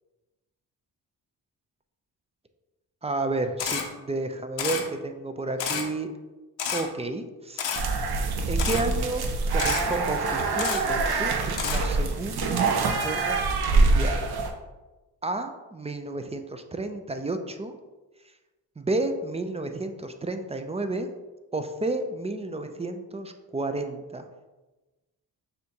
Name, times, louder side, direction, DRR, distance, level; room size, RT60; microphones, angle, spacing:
voice 1, 3.0-6.1 6.7-7.7 8.5-11.4 11.6-12.7 13.0-14.3 15.2-17.7 18.8-21.1 21.5-24.3, right 2 dB, 15° right, 7 dB, 0.4 m, -31 dB
Camera, 3.6-3.8 4.6-4.8 5.6-5.8 6.6-6.8 7.6-7.8 8.6-8.8 9.6-9.8 10.6-10.8 11.6-11.8, left 7 dB, 75° left, 0.7 m, -29 dB
sound 1, 7.7-14.5, right 3 dB, 60° right, 0.7 m, -25 dB
6.2 x 2.6 x 2.7 m, 1.1 s
cardioid pair, 55°, 44 cm